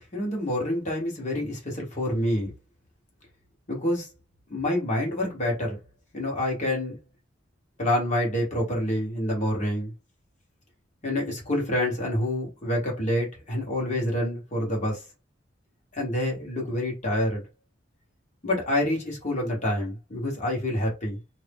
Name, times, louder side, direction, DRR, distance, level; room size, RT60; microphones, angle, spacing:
voice 1, 0.0-2.5 3.7-4.1 4.5-5.8 6.1-7.0 7.8-9.9 11.0-15.0 15.9-17.4 18.4-21.2, left 1 dB, 40° left, 1.2 m, -27 dB
2.6 x 2.0 x 3.5 m
head